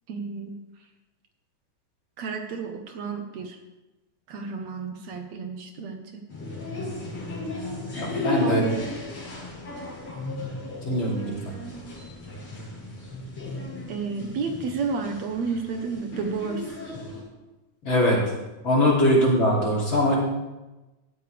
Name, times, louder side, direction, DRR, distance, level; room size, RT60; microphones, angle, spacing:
voice 1, 0.1-0.5 2.2-3.6 4.3-6.2 8.3-8.9 13.9-16.7, right 5 dB, 70° right, 4 dB, 2.2 m, -31 dB
sound 1, 6.3-17.2, left 2 dB, 60° left, 7.2 m, -35 dB
voice 2, 8.0-8.6 10.8-11.3 17.9-18.2 18.6-20.2, equal, 40° left, -4 dB, 3.8 m, -21 dB
17.0 x 13.0 x 3.4 m, 1.1 s
omnidirectional pair, 3.5 m